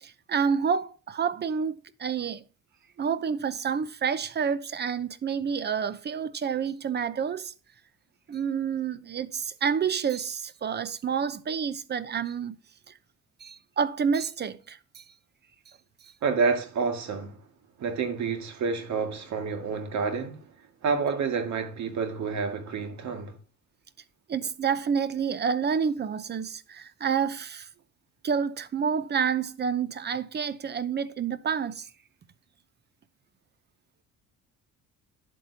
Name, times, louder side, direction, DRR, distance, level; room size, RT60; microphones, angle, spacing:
voice 1, 0.0-2.4 3.0-7.5 8.3-12.6 12.9-13.0 13.4-15.0 24.3-27.7 28.2-31.9, right 6 dB, 30° right, 0.7 m, -29 dB
voice 2, 16.2-17.4 17.8-20.4 20.8-23.4, right 5 dB, 60° right, 2.1 m, -29 dB
11.0 x 8.1 x 2.8 m
cardioid pair, 115°, 32 cm